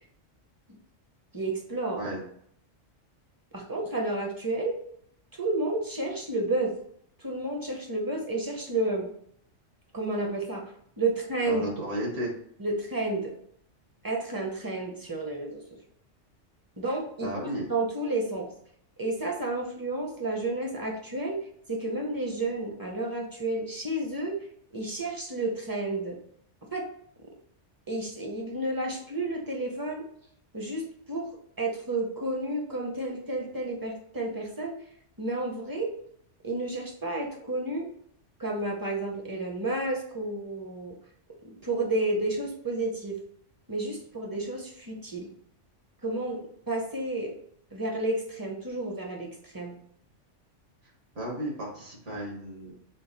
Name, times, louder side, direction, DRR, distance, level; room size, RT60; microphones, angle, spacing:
voice 1, 1.3-2.0 3.5-4.7 5.4-6.7 7.2-9.1 9.9-10.6 11.0-11.7 12.6-13.3 14.0-15.6 16.8-17.3 17.7-18.5 19.0-21.4 21.7-24.4 24.7-26.2 26.7-26.8 27.9-30.0 30.5-31.3 31.6-34.8 35.2-35.9 36.4-37.9 38.4-40.9 41.4-43.2 43.7-45.3 46.0-46.4 46.7-47.3 47.7-49.7, right 2 dB, 25° right, 1 dB, 0.6 m, -31 dB
voice 2, 11.4-12.3 17.2-17.7 51.2-52.7, equal, 75° right, -2 dB, 1.9 m, -33 dB
5.3 x 2.3 x 4.0 m, 0.68 s
omnidirectional pair, 1.2 m